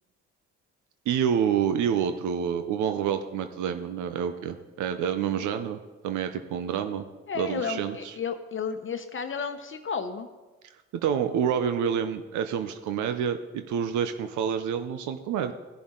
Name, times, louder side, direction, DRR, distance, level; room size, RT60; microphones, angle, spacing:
voice 1, 1.1-5.8 6.0-7.0 7.4-8.1 11.0-15.5, right 8 dB, 75° right, 8 dB, 0.7 m, -28 dB
voice 2, 7.3-10.3, left 6 dB, 40° left, 8 dB, 0.9 m, -32 dB
15.5 x 7.0 x 3.8 m, 1.2 s
supercardioid pair, 70°, 30 cm